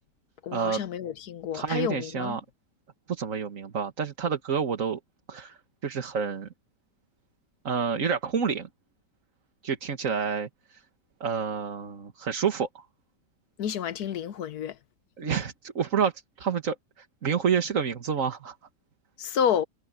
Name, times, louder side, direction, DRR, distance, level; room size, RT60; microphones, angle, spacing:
voice 1, 0.4-2.4 13.6-14.7 19.2-19.6, left 8 dB, 65° left, 1.3 m, -29 dB
voice 2, 1.5-2.4 3.1-5.0 5.3-5.6 5.8-6.5 7.6-8.7 9.6-10.8 11.2-12.9 15.2-16.1 16.4-18.5, right 6 dB, 50° right, 1.9 m, -28 dB
omnidirectional pair, 1.9 m